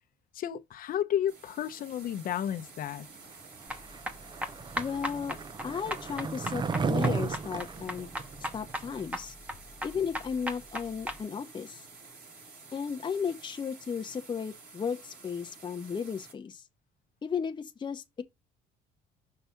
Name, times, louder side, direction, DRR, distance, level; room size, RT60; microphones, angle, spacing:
voice 1, 0.3-3.0, left 10 dB, 55° left, 0.8 m, -32 dB
sound 1, 1.3-16.3, right 4 dB, 60° right, 3.3 m, -51 dB
Skateboard, 3.6-9.0, right 5 dB, 25° right, 0.5 m, -34 dB
sound 2, 3.7-11.2, equal, 10° right, 1.1 m, -38 dB
voice 2, 4.8-5.4 5.6-6.6 6.9-8.1 8.5-9.3 9.8-11.8 12.7-16.6 17.2-18.2, left 6 dB, 25° left, 0.8 m, -34 dB
5.8 x 3.3 x 5.7 m
cardioid pair, 110°, 17 cm